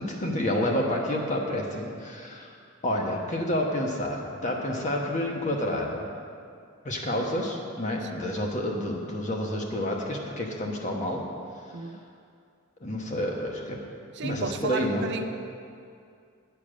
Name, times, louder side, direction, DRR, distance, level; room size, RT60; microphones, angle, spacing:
voice 1, 0.0-2.5 2.8-6.0 6.8-11.2 12.8-13.8 14.2-15.1, left 1 dB, 35° left, 0 dB, 1.1 m, -29 dB
voice 2, 8.0-8.4 11.7-12.0 14.1-15.2, right 4 dB, 55° right, 7 dB, 0.5 m, -33 dB
8.3 x 7.0 x 6.3 m, 2.4 s
head